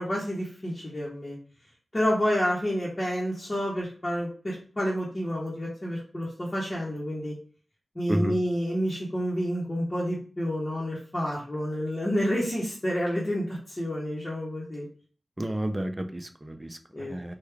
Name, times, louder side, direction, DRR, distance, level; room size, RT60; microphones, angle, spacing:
voice 1, 0.0-1.4 1.9-7.3 7.9-14.9 16.9-17.3, equal, 30° left, -6 dB, 1.0 m, -29 dB
voice 2, 15.4-17.3, right 1 dB, 20° right, 7 dB, 0.4 m, -31 dB
3.1 x 2.3 x 3.4 m, 0.42 s
wide cardioid pair, 60°, 0 cm